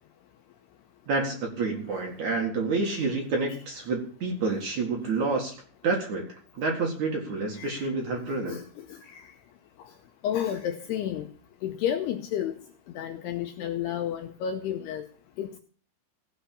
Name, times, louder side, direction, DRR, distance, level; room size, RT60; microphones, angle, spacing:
voice 1, 1.1-5.5 5.8-8.6, right 3 dB, 50° right, 2.6 m, -29 dB
voice 2, 7.6-7.9 8.3-9.3 9.8-9.9 10.2-11.3 11.6-12.5 12.9-15.1 15.4-15.6, left 10 dB, 80° left, 2.5 m, -32 dB
16.0 x 5.8 x 8.5 m
omnidirectional pair, 5.5 m